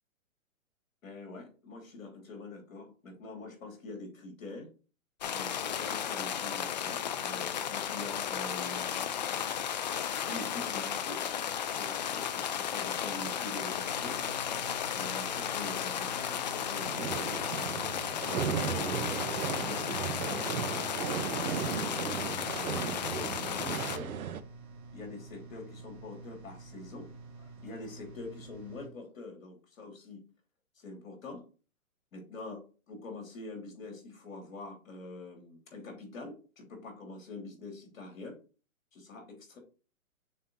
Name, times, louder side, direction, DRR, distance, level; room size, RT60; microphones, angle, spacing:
voice 1, 1.0-4.7 5.3-8.9 10.2-11.3 11.8-14.2 14.9-17.2 18.2-19.3 19.6-20.5 21.7-24.2 24.9-27.1 27.4-30.2 30.8-31.4 32.1-32.6 32.9-38.4 38.9-39.6, left 3 dB, 70° left, 2 dB, 3.0 m, -45 dB
sound 1, 5.2-24.0, left 9 dB, 35° left, 0.4 m, -34 dB
sound 2, 13.7-28.9, right 3 dB, 50° right, 2.0 m, -49 dB
sound 3, 16.8-24.4, right 8 dB, 80° right, 0.8 m, -36 dB
6.5 x 3.5 x 4.4 m, 0.36 s
hypercardioid pair, 140°, 42 cm